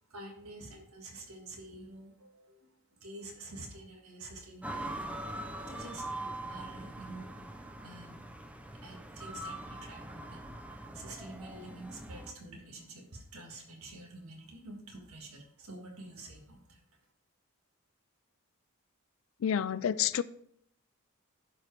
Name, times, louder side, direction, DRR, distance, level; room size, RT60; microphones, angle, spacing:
voice 1, 0.1-7.3 7.8-8.3 8.8-10.4 10.7-16.8, right 2 dB, 80° right, 1.7 m, -48 dB
sound 1, 4.6-12.3, right 1 dB, 5° right, 0.4 m, -42 dB
voice 2, 19.4-20.2, left 9 dB, 65° left, 0.3 m, -29 dB
11.0 x 4.6 x 3.3 m
head